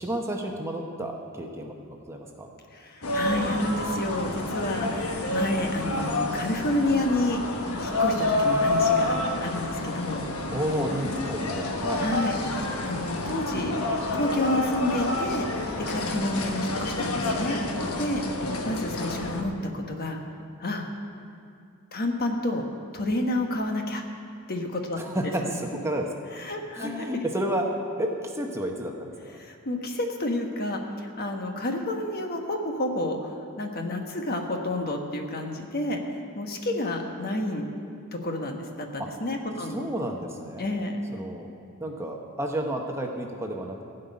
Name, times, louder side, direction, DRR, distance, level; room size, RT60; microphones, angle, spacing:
voice 1, 0.0-1.8 2.1-2.5 10.5-12.1 25.0-26.1 26.7-27.7 28.0-29.4 39.0-39.1 39.6-40.7 41.1-41.5 41.8-43.8, right 1 dB, 10° right, 1 dB, 0.9 m, -31 dB
voice 2, 2.7-7.4 7.8-10.2 12.0-13.7 14.1-15.6 15.9-18.2 18.6-20.2 20.6-20.9 21.9-22.6 22.9-24.0 24.5-25.0 26.4-27.0 29.4-33.3 33.6-36.0 36.3-37.7 38.1-39.8 40.6-41.0, left 1 dB, 45° left, 3 dB, 1.2 m, -30 dB
sound 1, 3.0-19.4, left 2 dB, 70° left, 1.3 m, -28 dB
16.0 x 5.5 x 9.4 m, 2.5 s
head